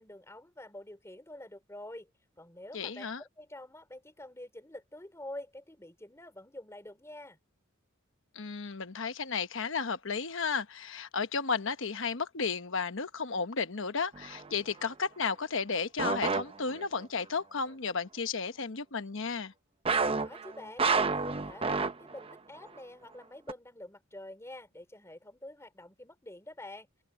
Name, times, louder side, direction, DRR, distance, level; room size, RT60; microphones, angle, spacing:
voice 1, 0.0-2.1 2.4-7.4 20.1-26.9, left 1 dB, 15° left, 4.0 m, -47 dB
voice 2, 2.7-3.2 8.3-19.5, left 5 dB, 65° left, 1.1 m, -33 dB
sound 1, 14.1-14.5 16.0-17.0 19.9-22.3 22.7-22.8 23.5-23.6, right 4 dB, 25° right, 0.8 m, -30 dB
open air
head